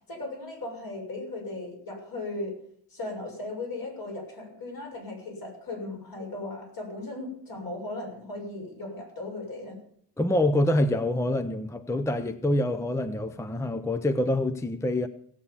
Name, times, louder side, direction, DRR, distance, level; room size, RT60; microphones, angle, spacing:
voice 1, 0.1-2.5 2.9-9.7, left 2 dB, 60° left, 6.9 m, -37 dB
voice 2, 10.2-15.1, left 1 dB, 5° left, 0.6 m, -26 dB
17.0 x 8.2 x 7.2 m
wide cardioid pair, 150°, 41 cm